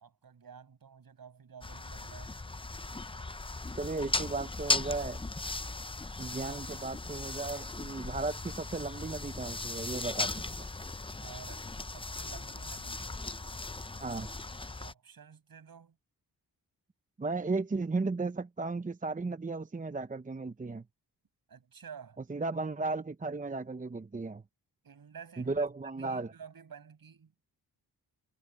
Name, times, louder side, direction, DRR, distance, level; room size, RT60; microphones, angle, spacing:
voice 1, 0.0-2.4 11.2-13.1 14.8-16.0 21.5-22.2 24.8-25.7 26.0-27.3, right 7 dB, 60° right, 6.5 m, -51 dB
sound 1, 1.6-14.9, left 2 dB, 15° left, 0.7 m, -37 dB
voice 2, 3.8-5.2 6.2-10.7 14.0-14.3 17.2-20.8 22.3-24.4 25.4-26.3, right 3 dB, 20° right, 0.8 m, -35 dB
cardioid pair, 70°, 39 cm